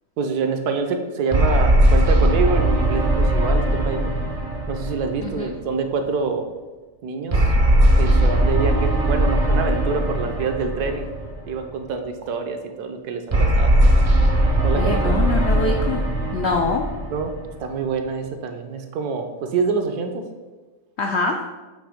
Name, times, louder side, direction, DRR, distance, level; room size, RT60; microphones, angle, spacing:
voice 1, 0.2-4.1 4.7-6.5 7.0-7.5 8.0-11.1 11.4-13.7 14.6-15.0 17.1-17.3 17.6-20.2, right 4 dB, 70° right, 5 dB, 1.2 m, -26 dB
sound 1, 1.3-5.9 7.3-11.7 13.3-17.9, right 1 dB, 45° right, 0.4 m, -19 dB
voice 2, 5.2-5.6 14.7-16.0 16.3-16.9 21.0-21.4, left 3 dB, 80° left, 2 dB, 0.5 m, -24 dB
7.9 x 3.0 x 4.9 m, 1.2 s
omnidirectional pair, 1.8 m